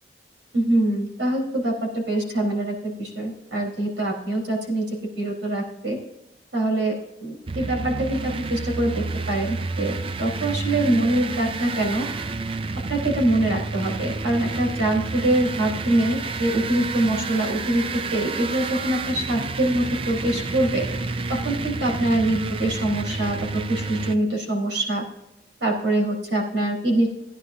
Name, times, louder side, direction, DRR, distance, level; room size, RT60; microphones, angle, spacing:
voice 1, 0.5-4.9 5.2-6.0 6.5-6.9 7.2-12.1 12.9-20.9 21.3-25.0 25.6-27.1, right 1 dB, 85° right, -1 dB, 4.2 m, -24 dB
sound 1, 7.5-24.1, right 3 dB, 30° right, 0.4 m, -30 dB
17.0 x 10.0 x 2.7 m, 0.87 s
head